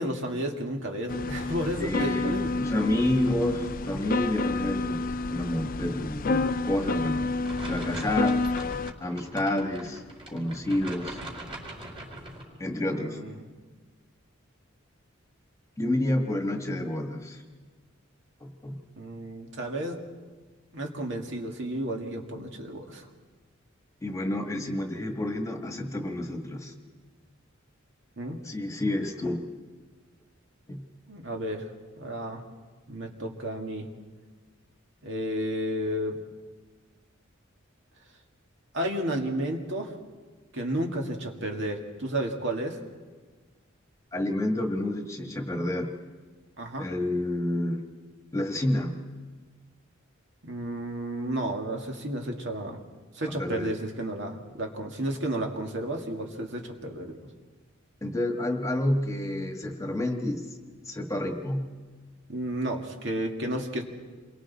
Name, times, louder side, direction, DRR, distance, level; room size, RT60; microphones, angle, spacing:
voice 1, 0.0-2.6 12.8-13.5 19.0-20.0 20.7-23.1 28.2-28.4 31.1-31.7 32.0-32.4 32.9-33.9 35.0-36.2 38.7-39.9 40.5-42.8 46.6-46.9 50.4-52.8 53.1-57.2 62.3-63.8, right 1 dB, 65° right, 2 dB, 2.1 m, -32 dB
sound 1, 1.1-8.9, left 3 dB, 45° left, 0.5 m, -29 dB
voice 2, 1.8-7.4 7.6-8.5 9.0-10.0 10.3-11.2 12.6-13.2 15.8-17.4 18.4-18.8 24.0-26.7 28.4-29.5 30.7-30.9 44.1-45.9 46.8-47.8 48.3-49.0 53.2-53.7 58.0-60.4 60.9-61.7, left 1 dB, 15° left, 4 dB, 1.5 m, -29 dB
sound 2, 7.4-12.4, right 1 dB, 25° right, 4.6 m, -42 dB
28.5 x 23.0 x 4.2 m, 1.4 s
head